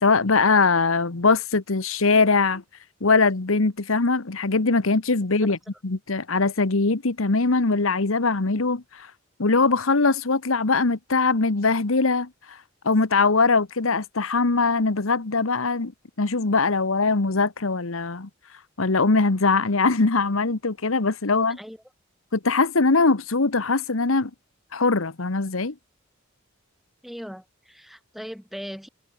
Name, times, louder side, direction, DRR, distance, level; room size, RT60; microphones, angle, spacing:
voice 1, 0.0-2.6 3.0-5.6 5.8-9.1 9.4-12.6 12.8-15.9 16.2-18.3 18.8-21.6 22.3-24.3 24.7-25.7, left 3 dB, 75° left, 1.2 m, -21 dB
voice 2, 21.5-21.8 27.0-28.9, equal, ahead, 2.7 m, -39 dB
head